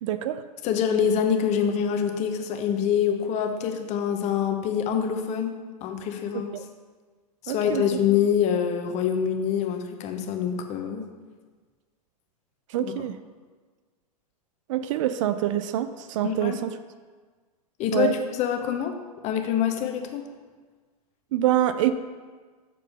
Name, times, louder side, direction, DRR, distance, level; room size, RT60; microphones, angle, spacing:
voice 1, 0.0-0.4 6.5-6.6 7.5-7.8 12.7-13.2 14.7-16.7 17.9-18.1 21.3-21.9, right 12 dB, 55° right, 12 dB, 0.4 m, -25 dB
voice 2, 0.6-6.5 7.4-11.1 12.8-12.9 16.2-16.6 17.8-19.0 19.2-20.2, left 8 dB, 35° left, 5 dB, 0.8 m, -25 dB
7.0 x 4.6 x 5.3 m, 1.4 s
hypercardioid pair, 105°, 20 cm